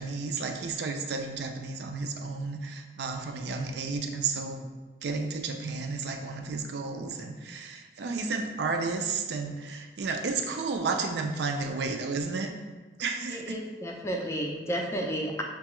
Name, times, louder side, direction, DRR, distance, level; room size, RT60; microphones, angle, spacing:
voice 1, 0.0-4.7 5.0-12.5 13.0-13.6, right 4 dB, 75° right, 4 dB, 0.4 m, -32 dB
voice 2, 13.3-15.4, equal, 15° left, 1 dB, 0.3 m, -32 dB
5.8 x 2.3 x 3.0 m, 1.3 s
head